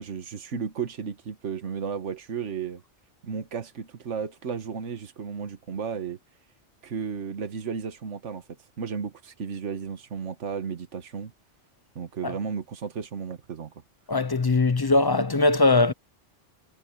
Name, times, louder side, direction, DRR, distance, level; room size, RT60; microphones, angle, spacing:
voice 1, 0.0-2.8 3.2-6.2 6.8-8.4 8.8-11.3 11.9-13.7, right 6 dB, 75° right, 1.6 m, -34 dB
voice 2, 14.1-15.9, left 3 dB, 35° left, 0.4 m, -21 dB
omnidirectional pair, 1.2 m